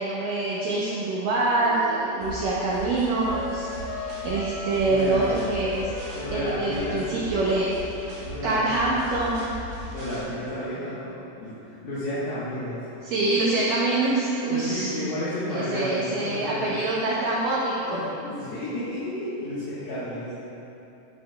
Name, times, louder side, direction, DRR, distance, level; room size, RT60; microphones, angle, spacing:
voice 1, 0.0-5.9 6.3-7.7 8.4-9.5 13.0-14.9 15.5-18.0, right 2 dB, 90° right, -7 dB, 1.9 m, -25 dB
Wind instrument woodwind instrument, 1.6-7.8, left 4 dB, 90° left, 2.8 m, -38 dB
sound 1, 2.2-10.2, right 1 dB, 65° right, 2.3 m, -39 dB
voice 2, 4.8-5.3 6.1-7.0 8.2-8.8 9.9-12.8 14.5-16.7 17.8-20.3, left 1 dB, 70° left, -11 dB, 3.1 m, -32 dB
10.5 x 7.8 x 2.3 m, 3.0 s
omnidirectional pair, 5.0 m